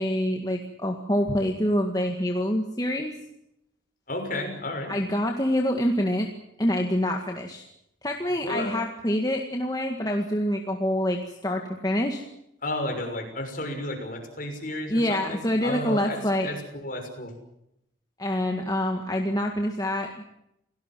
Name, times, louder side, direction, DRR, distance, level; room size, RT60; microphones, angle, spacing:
voice 1, 0.0-3.1 4.9-6.3 6.6-7.6 8.0-12.2 14.9-16.5 18.2-20.3, equal, 20° left, 2 dB, 2.0 m, -26 dB
voice 2, 4.1-4.9 8.4-8.8 12.6-17.3, left 1 dB, 45° left, 4 dB, 6.3 m, -32 dB
29.0 x 18.0 x 7.7 m, 0.80 s
head